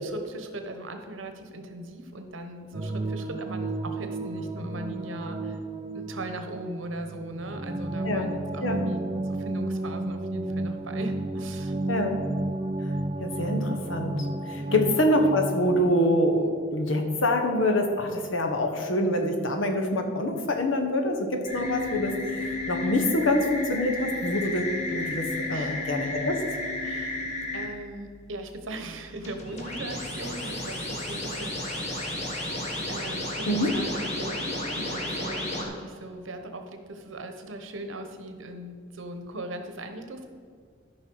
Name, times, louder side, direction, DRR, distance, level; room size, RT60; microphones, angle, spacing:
voice 1, 0.0-5.6 5.9-11.8 14.6-14.8 25.5-25.9 26.8-27.2 27.5-32.2 32.9-40.3, right 1 dB, 80° right, 6 dB, 1.1 m, -39 dB
sound 1, 2.7-15.8, right 2 dB, 25° right, 0.5 m, -32 dB
voice 2, 11.9-12.2 12.8-12.9 13.2-26.4 33.5-33.7, left 1 dB, 80° left, 4 dB, 1.4 m, -26 dB
sound 2, 21.4-27.7 29.2-35.6, left 2 dB, 35° left, 1.7 m, -32 dB
13.0 x 5.7 x 4.7 m, 2.1 s
head